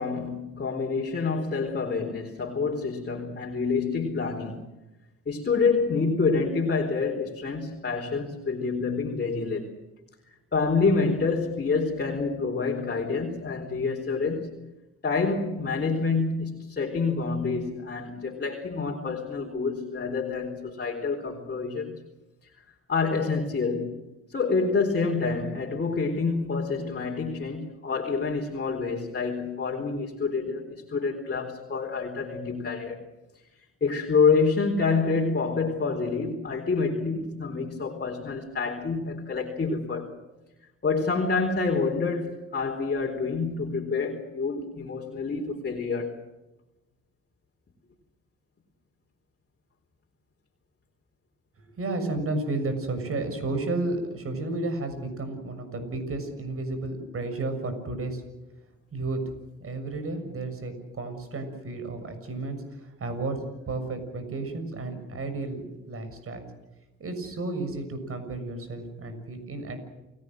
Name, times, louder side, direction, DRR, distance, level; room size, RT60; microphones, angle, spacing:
voice 1, 0.0-4.7 5.3-9.7 10.5-14.6 15.0-22.0 22.9-24.0 24.3-33.0 33.8-40.1 40.8-46.1, left 4 dB, 35° left, 0 dB, 4.2 m, -27 dB
voice 2, 51.6-58.2 58.9-59.2 59.6-63.3 63.7-66.5 67.0-69.8, right 2 dB, 50° right, 8 dB, 6.8 m, -32 dB
29.0 x 19.0 x 7.8 m, 1.0 s
cardioid pair, 90°, 30 cm